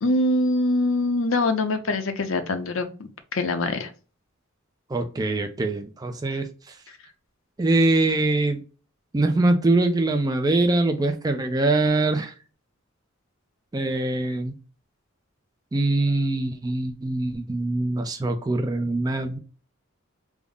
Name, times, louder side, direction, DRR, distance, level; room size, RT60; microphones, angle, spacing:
voice 1, 0.0-2.9 3.3-3.9, left 2 dB, 70° left, 8 dB, 0.6 m, -23 dB
voice 2, 4.9-6.5 7.6-8.6 9.1-12.3 13.7-14.5 15.7-19.4, right 2 dB, 20° right, 5 dB, 0.4 m, -23 dB
3.5 x 2.0 x 3.5 m, 0.35 s
head